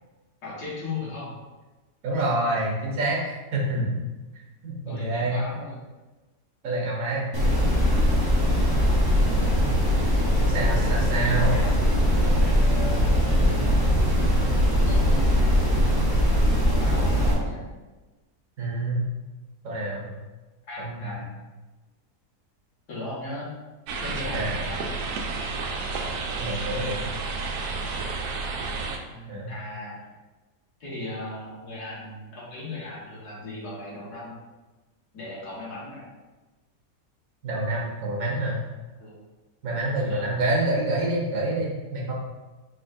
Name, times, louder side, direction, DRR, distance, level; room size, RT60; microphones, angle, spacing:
voice 1, 0.4-1.3 3.8-3.9 4.8-5.8 11.5-13.8 14.8-15.7 16.6-17.6 20.7-21.3 22.9-23.5 24.0-25.0 26.8-27.1 29.1-30.0 30.8-34.4 35.1-36.0 39.0-39.2 40.1-40.3, left 2 dB, 75° left, -7 dB, 2.1 m, -37 dB
voice 2, 2.0-3.2 3.5-3.8 4.6-5.4 6.6-7.2 10.5-11.6 18.6-19.0 19.6-20.1 20.8-21.1 24.3-24.5 26.4-27.0 29.3-29.5 37.4-38.6 39.6-42.1, right 2 dB, 60° right, -3 dB, 1.4 m, -27 dB
sound 1, 7.3-17.3, equal, 20° right, 0.7 m, -21 dB
sound 2, 23.9-29.0, right 4 dB, 75° right, 1.1 m, -31 dB
4.7 x 4.0 x 2.6 m, 1.2 s
omnidirectional pair, 1.7 m